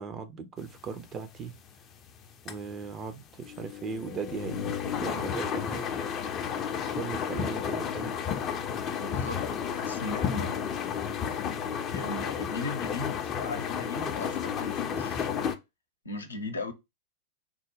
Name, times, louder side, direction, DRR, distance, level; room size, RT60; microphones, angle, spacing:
voice 1, 0.0-1.6 2.4-5.9 6.7-8.2, right 5 dB, 25° right, 0.5 m, -38 dB
sound 1, 0.7-15.5, left 7 dB, 30° left, 0.5 m, -32 dB
voice 2, 9.0-10.8 11.9-15.5 16.0-16.7, left 2 dB, 75° left, 0.6 m, -38 dB
3.5 x 2.1 x 3.3 m
figure-of-eight pair, 90°, 0 cm